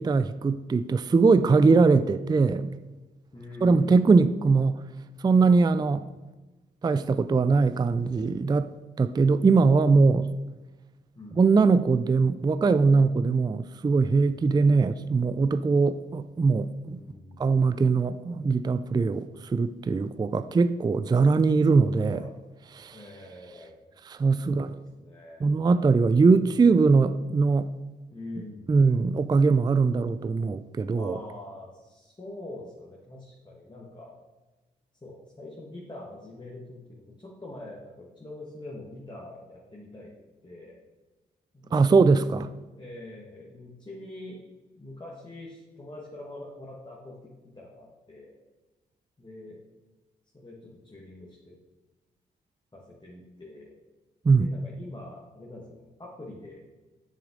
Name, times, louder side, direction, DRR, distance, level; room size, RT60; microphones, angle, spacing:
voice 1, 0.0-2.7 3.6-4.8 5.2-6.1 6.8-8.7 9.0-10.3 11.4-17.0 17.4-19.3 19.5-22.2 22.8-23.0 24.1-24.7 25.4-27.7 28.7-31.2 41.7-42.5 54.3-54.5, right 4 dB, 20° right, 0.4 m, -21 dB
voice 2, 3.3-4.0 11.1-11.5 16.9-17.6 22.1-22.4 22.9-23.8 24.4-25.5 28.1-28.8 31.0-34.1 35.0-40.1 40.4-40.8 41.5-42.1 42.8-44.4 44.7-48.4 49.2-49.6 50.3-51.5 52.7-53.7 54.4-56.6, left 2 dB, 25° left, 1.6 m, -44 dB
6.9 x 6.3 x 3.8 m
supercardioid pair, 40°, 20 cm